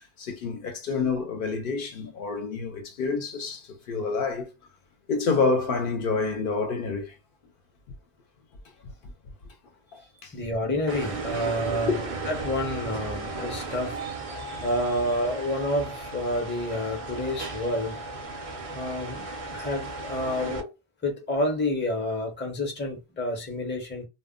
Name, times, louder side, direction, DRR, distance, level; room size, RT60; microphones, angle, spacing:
voice 1, 0.0-4.5 5.1-7.1 8.8-8.9 9.9-10.3 11.9-12.0, left 4 dB, 65° left, 0.7 m, -28 dB
voice 2, 10.3-14.0 14.6-18.0 18.7-20.7 21.0-24.0, left 1 dB, 15° left, 0.5 m, -29 dB
sound 1, 10.9-20.6, right 3 dB, 50° right, 0.5 m, -35 dB
2.1 x 2.0 x 3.5 m
omnidirectional pair, 1.1 m